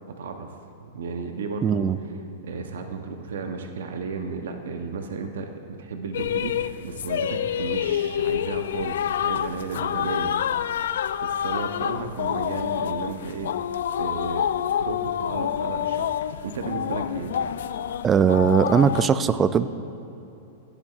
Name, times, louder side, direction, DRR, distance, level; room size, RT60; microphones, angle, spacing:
voice 1, 0.2-0.5 0.8-2.1 2.4-5.5 5.8-10.4 11.2-13.5 14.0-14.5 14.8-17.4, right 4 dB, 80° right, 5 dB, 0.8 m, -33 dB
voice 2, 1.6-2.0 18.0-19.7, right 7 dB, 25° right, 13 dB, 0.3 m, -20 dB
sound 1, 6.1-19.1, left 9 dB, 75° left, 0.3 m, -27 dB
16.0 x 9.9 x 2.4 m, 3.0 s
hypercardioid pair, 120°, 0 cm